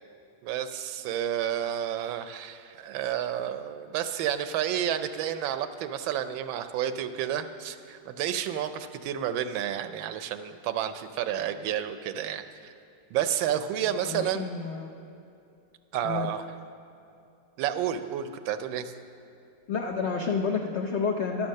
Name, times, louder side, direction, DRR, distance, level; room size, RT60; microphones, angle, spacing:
voice 1, 0.4-12.4 13.1-14.5 15.9-16.4 17.6-18.9, right 10 dB, 90° right, 10 dB, 1.4 m, -30 dB
voice 2, 13.8-14.9 16.0-16.3 19.7-21.5, left 5 dB, 85° left, 2 dB, 0.6 m, -30 dB
12.0 x 7.3 x 6.4 m, 2.7 s
omnidirectional pair, 2.1 m